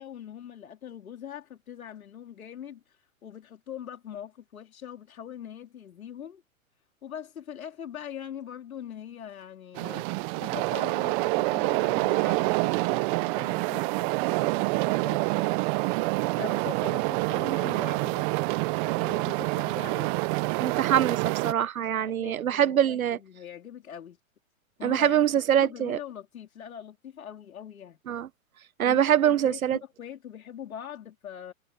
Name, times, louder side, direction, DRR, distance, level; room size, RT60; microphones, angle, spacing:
voice 1, 0.0-6.4 7.0-10.1 10.4-15.6 16.4-20.2 22.0-24.2 24.8-25.3 25.6-28.0 28.8-31.5, left 9 dB, 80° left, 4.0 m, -42 dB
sound 1, 9.7-21.5, right 26 dB, 35° right, 1.2 m, -27 dB
voice 2, 20.6-23.2 24.8-26.0 28.1-28.3 28.8-29.8, right 10 dB, 80° right, 1.3 m, -24 dB
hypercardioid pair, 130°, 41 cm